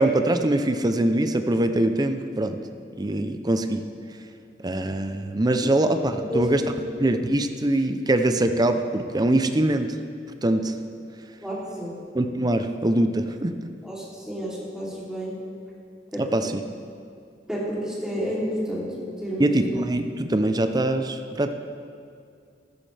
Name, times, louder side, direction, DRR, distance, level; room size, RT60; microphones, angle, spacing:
voice 1, 0.0-2.6 3.0-3.9 4.6-6.6 7.0-9.9 10.4-10.7 12.1-13.6 16.2-16.6 19.4-21.5, right 1 dB, 25° right, 7 dB, 0.6 m, -23 dB
voice 2, 11.4-12.0 13.8-15.3 16.1-16.2 17.5-18.9 19.2-19.6, equal, 5° right, -7 dB, 3.1 m, -30 dB
14.5 x 13.5 x 3.4 m, 2.4 s
head